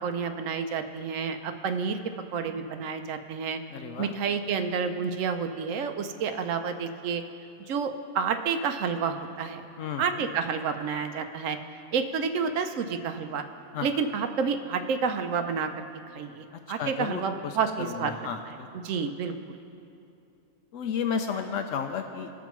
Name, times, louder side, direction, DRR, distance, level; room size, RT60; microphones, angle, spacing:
voice 1, 0.0-2.0 2.3-3.6 4.0-7.2 7.7-9.6 10.0-11.6 11.9-13.4 13.8-15.8 16.1-18.1 18.8-19.6, right 6 dB, 85° right, 7 dB, 1.0 m, -29 dB
voice 2, 3.7-4.1 9.8-10.3 13.7-14.0 16.8-18.7 20.7-22.4, left 7 dB, 85° left, 6 dB, 1.0 m, -33 dB
20.0 x 7.1 x 3.1 m, 2.7 s
omnidirectional pair, 1.3 m